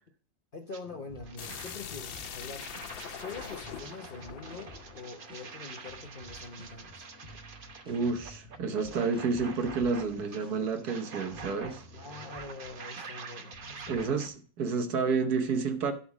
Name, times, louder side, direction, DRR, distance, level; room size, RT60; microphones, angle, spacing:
voice 1, 0.5-2.7 3.2-7.0 11.9-14.2, left 4 dB, 50° left, 0.6 m, -44 dB
sound 1, 0.7-0.8 1.2-14.3, right 4 dB, 45° right, 0.7 m, -47 dB
sound 2, 0.8-14.3, equal, 5° right, 3.8 m, -52 dB
sound 3, 1.4-6.1, left 9 dB, 85° left, 1.6 m, -44 dB
voice 2, 7.9-11.8 13.9-15.9, right 4 dB, 60° right, 1.4 m, -30 dB
11.5 x 4.2 x 6.0 m
omnidirectional pair, 2.0 m